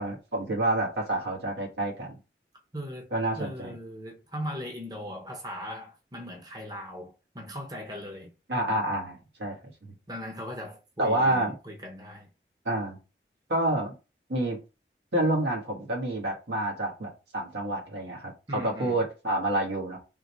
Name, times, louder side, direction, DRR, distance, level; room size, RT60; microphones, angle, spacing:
voice 1, 0.0-2.2 3.1-3.7 8.5-9.6 9.8-9.9 11.0-11.5 12.6-13.0 13.5-13.9 14.3-14.6 15.1-20.0, right 1 dB, 80° right, 1.5 m, -28 dB
voice 2, 2.7-3.1 3.3-8.3 10.1-12.3 18.5-19.0, equal, 20° right, 0.8 m, -39 dB
3.7 x 3.4 x 3.1 m
head